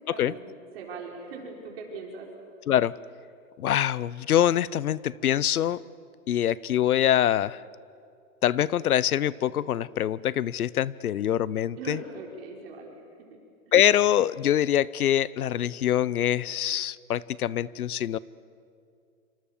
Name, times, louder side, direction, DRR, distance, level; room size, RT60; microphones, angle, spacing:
voice 1, 0.1-2.3 11.7-13.4 13.7-13.8, right 4 dB, 45° right, 0 dB, 4.5 m, -41 dB
voice 2, 3.6-5.8 6.3-7.6 8.4-12.0 13.7-18.2, left 11 dB, 80° left, 21 dB, 0.9 m, -24 dB
27.0 x 26.0 x 7.2 m, 2.4 s
hypercardioid pair, 165°, 43 cm